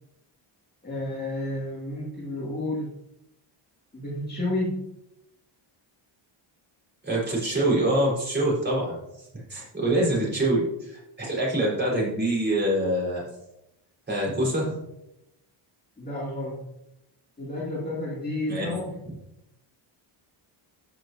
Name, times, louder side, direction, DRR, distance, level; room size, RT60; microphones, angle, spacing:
voice 1, 0.8-2.9 3.9-4.9 9.8-10.3 16.0-16.7 17.4-19.0, left 1 dB, 20° left, -7 dB, 2.2 m, -31 dB
voice 2, 7.0-13.3 14.1-14.8 18.5-18.7, right 1 dB, 20° right, -5 dB, 4.2 m, -25 dB
12.5 x 8.9 x 2.7 m, 0.85 s
cardioid pair, 165°, 50 cm